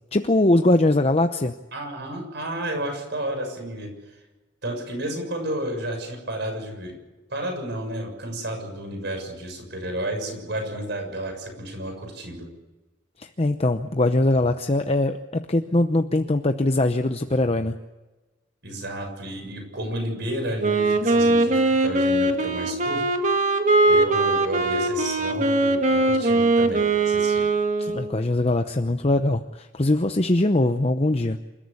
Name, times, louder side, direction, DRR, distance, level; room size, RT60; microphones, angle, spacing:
voice 1, 0.1-1.5 13.2-17.7 27.8-31.4, left 2 dB, 30° left, 7 dB, 0.8 m, -22 dB
voice 2, 1.7-3.9 4.6-7.0 7.3-12.5 18.6-23.1 23.9-27.4, right 1 dB, 60° right, 4 dB, 6.8 m, -31 dB
Wind instrument woodwind instrument, 20.6-28.2, right 2 dB, 40° right, 2.0 m, -21 dB
28.0 x 14.0 x 8.5 m, 1.2 s
head